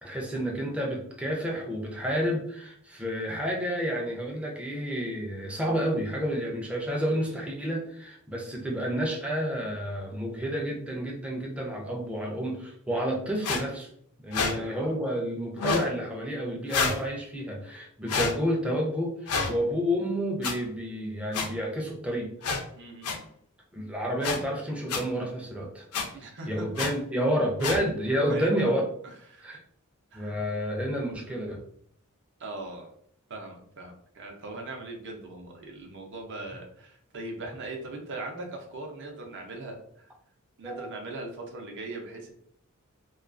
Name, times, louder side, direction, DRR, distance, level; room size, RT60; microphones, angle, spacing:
voice 1, 0.0-13.9 14.2-22.3 23.7-25.9 26.5-28.8 29.4-29.6 30.1-31.6 40.6-40.9, equal, 5° right, -1 dB, 0.4 m, -30 dB
sound 1, 13.4-13.6 14.3-14.5 15.6-15.9 16.7-17.0 18.1-18.3 19.3-19.5 20.4-20.5 21.3-21.5 22.4-22.6 23.0-23.2 24.2-24.4 24.9-25.0 25.9-26.1 26.8-26.9 27.6-27.8, left 4 dB, 80° left, 0.4 m, -27 dB
voice 2, 14.4-15.0 22.8-23.2 26.1-26.7 28.3-28.7 29.0-29.6 30.1-30.4 32.4-32.9 33.3-40.1 40.6-42.3, right 2 dB, 55° right, 2 dB, 0.6 m, -40 dB
2.3 x 2.2 x 2.4 m, 0.67 s
head